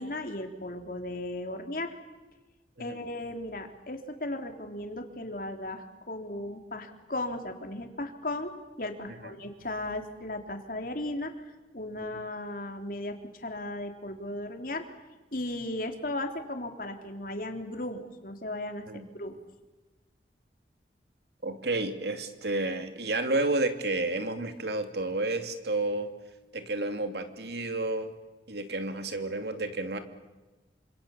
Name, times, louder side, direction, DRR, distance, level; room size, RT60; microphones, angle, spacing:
voice 1, 0.0-1.9 2.8-11.3 11.7-14.9 15.3-18.9 19.1-19.4, left 1 dB, 50° left, 4 dB, 3.6 m, -36 dB
voice 2, 21.4-26.1 26.5-28.1 28.5-30.0, right 2 dB, 70° right, 7 dB, 2.8 m, -30 dB
28.0 x 27.0 x 7.3 m, 1.2 s
head